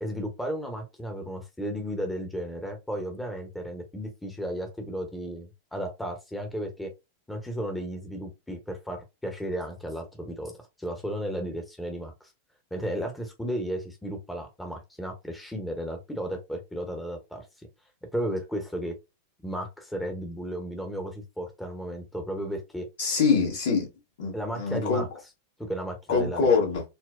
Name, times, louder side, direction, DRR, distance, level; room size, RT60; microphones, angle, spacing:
voice 1, 0.0-6.9 7.3-10.5 10.8-12.3 12.7-17.7 18.1-18.9 19.4-22.9 24.3-25.1 25.6-26.5, equal, 5° left, 0.8 m, -34 dB
voice 2, 23.0-23.9 24.2-25.0 26.1-26.8, left 5 dB, 60° left, 1.5 m, -24 dB
4.3 x 2.0 x 2.4 m
figure-of-eight pair, 90°, 0 cm